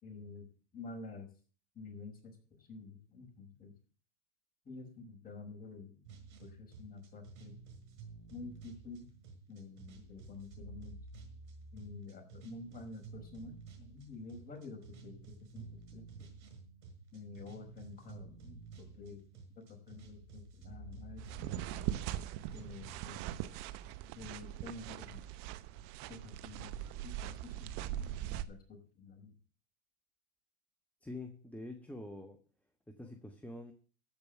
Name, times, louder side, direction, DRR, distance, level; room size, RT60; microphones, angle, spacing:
voice 1, 0.0-0.5 0.7-1.3 1.7-3.7 4.7-6.0 6.4-7.6 8.3-9.1 9.5-11.0 11.7-15.7 15.9-16.3 17.1-19.2 19.7-21.7 22.5-23.2 24.1-25.2 26.1-26.8 27.0-29.3, left 3 dB, 25° left, 2 dB, 5.2 m, -49 dB
sound 1, 6.0-23.0, right 4 dB, 75° right, 5.9 m, -52 dB
sound 2, 21.2-28.5, right 12 dB, 50° right, 1.0 m, -41 dB
voice 2, 31.0-32.4 32.9-33.7, left 2 dB, 5° left, 4 dB, 1.3 m, -46 dB
14.0 x 5.2 x 8.9 m, 0.40 s
hypercardioid pair, 105°, 35 cm